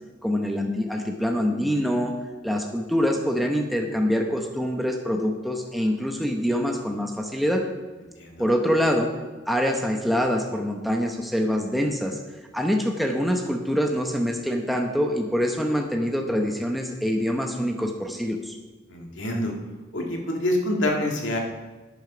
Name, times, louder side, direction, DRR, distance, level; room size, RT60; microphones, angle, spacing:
voice 1, 0.2-2.1 2.4-7.7 8.4-9.1 9.5-12.2 12.5-18.6, equal, ahead, 2 dB, 0.9 m, -25 dB
voice 2, 8.2-8.5 18.9-19.5 19.9-21.4, left 1 dB, 75° left, 1 dB, 2.2 m, -26 dB
11.5 x 9.4 x 5.1 m, 1.2 s
head